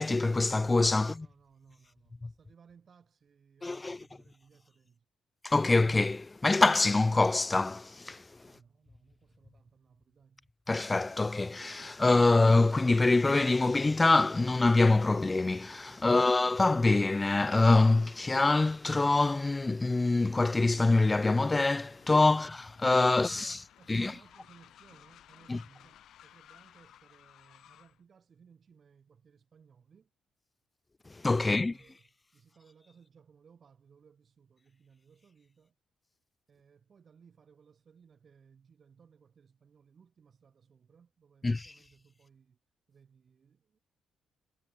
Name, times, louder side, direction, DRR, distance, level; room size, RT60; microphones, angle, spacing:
voice 1, 0.0-1.1 3.6-4.0 5.4-8.2 10.7-23.4 23.9-24.1 25.5-25.6 31.2-31.7 41.4-41.6, left 3 dB, 20° left, 0.3 m, -25 dB
voice 2, 0.9-5.1 8.4-10.5 15.9-16.4 22.3-22.5 23.1-30.1 31.4-35.8 36.5-42.6 42.9-43.8, right 6 dB, 50° right, 6.4 m, -62 dB
Train, 21.0-28.0, left 11 dB, 75° left, 8.0 m, -58 dB
cardioid pair, 80°, 0 cm